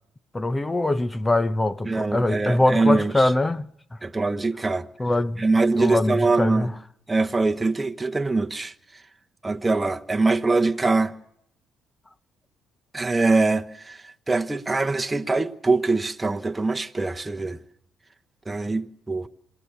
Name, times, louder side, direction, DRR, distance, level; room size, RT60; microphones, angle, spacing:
voice 1, 0.3-3.7 5.0-5.4 5.8-6.7, left 2 dB, 20° left, 1.0 m, -23 dB
voice 2, 1.8-3.3 4.0-4.9 5.4-6.7 7.1-8.7 9.4-11.1 12.9-17.6 18.5-19.3, right 3 dB, 20° right, 1.2 m, -23 dB
27.0 x 18.5 x 7.1 m
hypercardioid pair, 60°, 0 cm